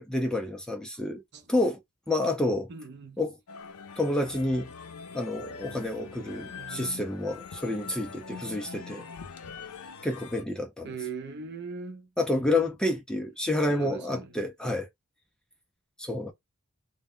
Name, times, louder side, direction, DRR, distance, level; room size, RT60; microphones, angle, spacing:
voice 1, 0.0-1.2 1.5-1.8 2.1-2.7 3.2-3.4 4.0-4.7 5.1-9.1 10.0-10.9 12.2-14.9 16.0-16.3, left 1 dB, 5° left, 0.4 m, -29 dB
voice 2, 2.7-3.2 6.5-7.0 10.8-12.1 13.7-14.3, right 4 dB, 50° right, 0.6 m, -40 dB
sound 1, 3.5-10.4, left 5 dB, 85° left, 0.5 m, -43 dB
2.1 x 2.1 x 3.6 m
head